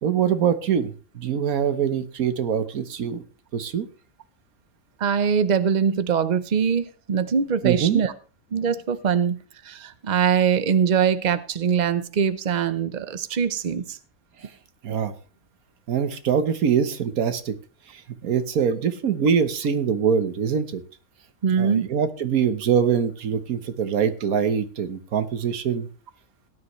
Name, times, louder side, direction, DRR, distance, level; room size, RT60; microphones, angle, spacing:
voice 1, 0.0-3.2 3.5-3.9 7.6-8.0 14.8-15.1 15.9-17.6 17.9-20.8 21.6-25.9, right 7 dB, 85° right, 11 dB, 1.5 m, -23 dB
voice 2, 5.0-8.1 8.5-9.4 9.6-14.0 21.4-21.9, right 7 dB, 40° right, 13 dB, 0.7 m, -22 dB
17.5 x 9.7 x 3.2 m, 0.37 s
omnidirectional pair, 1.5 m